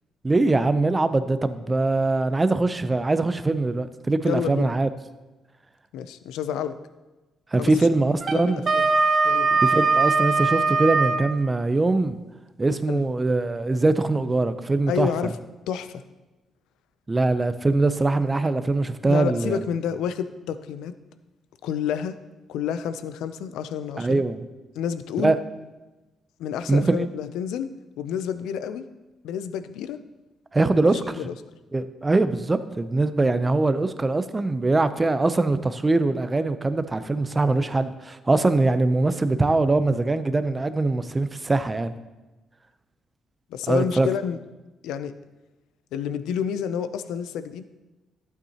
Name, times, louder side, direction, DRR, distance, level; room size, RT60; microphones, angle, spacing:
voice 1, 0.2-4.9 7.5-8.6 9.6-12.2 12.6-15.3 17.1-19.6 24.0-24.4 25.2-25.4 26.7-27.0 30.5-31.2 31.7-41.9 43.7-44.1, right 2 dB, 20° right, 12 dB, 0.5 m, -22 dB
voice 2, 4.3-4.7 5.9-6.8 7.6-7.7 8.3-8.9 9.2-9.6 12.9-13.0 14.9-15.3 15.7-16.0 19.1-20.9 21.6-22.2 22.5-24.2 24.8-25.3 26.4-27.7 28.0-28.8 29.2-30.0 31.2-31.3 43.5-44.4 44.8-45.1 45.9-47.6, left 8 dB, 90° left, 12 dB, 0.4 m, -29 dB
Wind instrument woodwind instrument, 8.2-11.3, right 4 dB, 45° right, 0.9 m, -21 dB
12.0 x 8.2 x 2.9 m, 1.1 s
cardioid pair, 90°, 0 cm